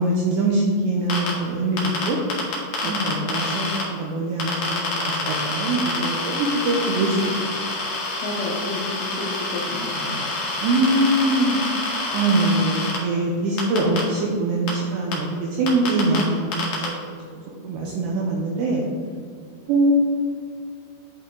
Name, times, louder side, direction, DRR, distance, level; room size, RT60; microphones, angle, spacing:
voice 1, 0.0-2.2 2.8-7.2 7.4-7.5 10.6-11.6 12.1-17.0 17.6-18.8 19.7-19.9, right 2 dB, 85° right, -1 dB, 2.5 m, -23 dB
sound 1, 1.1-1.3 1.8-3.8 4.4-13.0 13.6-14.0 14.7-14.8 15.1-15.2 15.7-16.2 16.5-16.8, left 3 dB, 60° left, 2.0 m, -27 dB
voice 2, 2.8-3.5 8.2-10.2, left 2 dB, 75° left, -3 dB, 2.7 m, -31 dB
10.0 x 5.4 x 3.8 m, 2.3 s
omnidirectional pair, 5.9 m